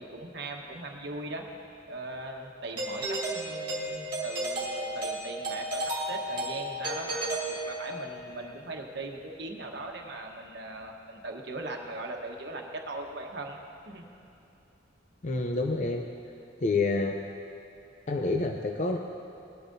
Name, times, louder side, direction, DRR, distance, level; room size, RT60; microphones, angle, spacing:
voice 1, 0.0-1.4 1.9-14.0, right 2 dB, 60° right, 1 dB, 1.2 m, -39 dB
Doorbell, 2.8-8.2, right 1 dB, 25° right, 2.1 m, -33 dB
voice 2, 15.2-16.1 16.6-17.2 18.1-19.0, left 3 dB, 40° left, 3 dB, 0.5 m, -28 dB
20.0 x 12.0 x 2.7 m, 2.7 s
head